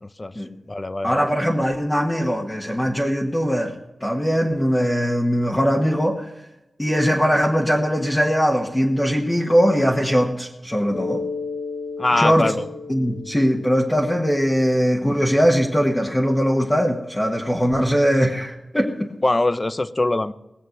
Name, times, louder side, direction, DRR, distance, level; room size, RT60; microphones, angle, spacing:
voice 1, 0.0-0.3 0.7-1.3 12.0-12.7 19.2-20.3, left 2 dB, 30° left, 13 dB, 0.6 m, -22 dB
voice 2, 1.0-3.7 4.0-6.3 6.8-11.2 12.2-12.5 12.9-19.1, equal, 15° left, -2 dB, 1.4 m, -20 dB
Mallet percussion, 10.9-15.4, left 4 dB, 70° left, 2.8 m, -34 dB
19.5 x 7.5 x 6.5 m, 0.98 s
wide cardioid pair, 90°, 0 cm